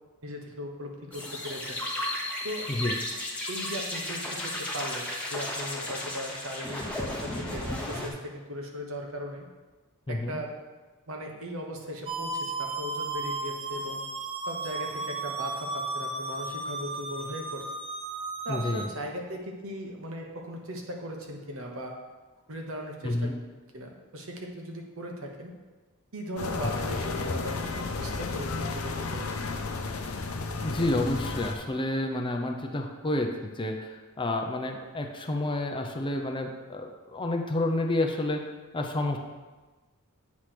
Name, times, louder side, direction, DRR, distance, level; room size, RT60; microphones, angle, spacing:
voice 1, 0.2-1.8 2.4-2.7 3.5-9.5 10.1-10.5 11.1-14.0 14.5-17.6 18.4-22.0 22.5-23.3 23.7-25.5 26.1-29.4, equal, 65° right, 1 dB, 1.1 m, -38 dB
sound 1, 1.1-8.1, left 1 dB, 5° left, 1.1 m, -34 dB
voice 2, 10.1-10.4 18.5-18.9 23.0-23.3 26.6-26.7 30.6-38.4 38.7-39.2, left 1 dB, 25° left, 3 dB, 0.6 m, -29 dB
sound 2, 12.1-18.9, right 3 dB, 25° right, 0.6 m, -34 dB
sound 3, 26.4-31.6, left 3 dB, 75° left, 0.7 m, -32 dB
8.4 x 3.3 x 5.9 m, 1.3 s
head